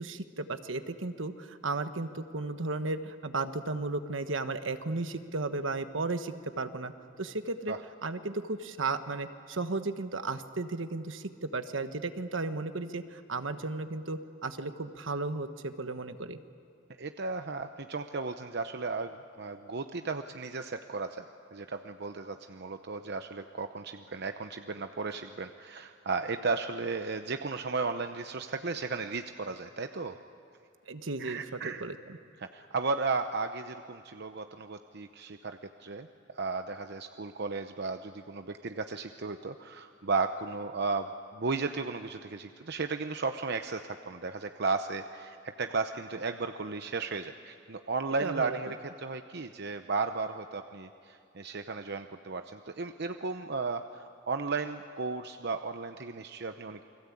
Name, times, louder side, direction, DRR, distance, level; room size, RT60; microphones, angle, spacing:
voice 1, 0.0-6.9 7.2-7.7 8.0-16.4 30.9-32.0 48.2-48.6, right 3 dB, 75° right, 9 dB, 1.3 m, -34 dB
voice 2, 17.0-21.3 21.5-30.2 31.2-31.8 32.4-56.8, right 4 dB, 60° right, 7 dB, 0.8 m, -35 dB
29.0 x 21.5 x 8.5 m, 2.7 s
head